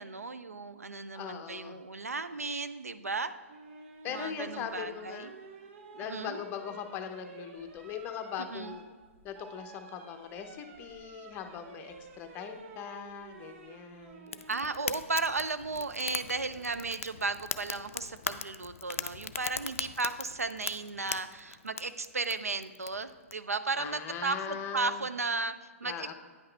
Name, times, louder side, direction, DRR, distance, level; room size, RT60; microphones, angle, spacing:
voice 1, 0.0-3.3 4.0-5.3 5.9-6.4 8.5-8.8 14.5-26.1, right 3 dB, 90° right, 11 dB, 0.4 m, -35 dB
voice 2, 1.1-1.8 4.0-5.3 5.9-8.9 9.2-14.4 23.8-25.0 25.8-26.1, left 8 dB, 25° left, 6 dB, 0.7 m, -40 dB
sound 1, 3.5-14.7 16.3-16.8, right 4 dB, 55° right, 0.8 m, -51 dB
Fire, 14.3-23.3, left 8 dB, 65° left, 0.4 m, -40 dB
9.3 x 5.7 x 3.3 m, 1.5 s
figure-of-eight pair, 120°, 8 cm